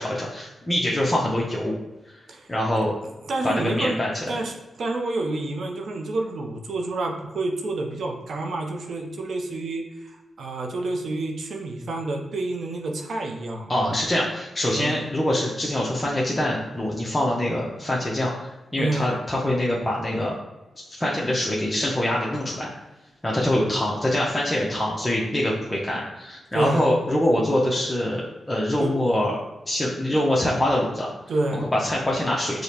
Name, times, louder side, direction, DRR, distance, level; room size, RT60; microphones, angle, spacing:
voice 1, 0.0-1.7 2.1-2.2 2.5-2.9 3.4-4.1 13.7-20.3 20.9-22.7 23.2-29.4 29.7-31.1 31.5-32.6, left 1 dB, 20° left, -4 dB, 0.6 m, -24 dB
voice 2, 3.3-4.0 4.3-14.0 14.7-15.1 18.8-19.2 26.5-26.9 28.8-28.9 31.3-31.7, right 2 dB, 70° right, 2 dB, 0.5 m, -29 dB
4.8 x 2.0 x 2.8 m, 1.0 s
cardioid pair, 60°, 0 cm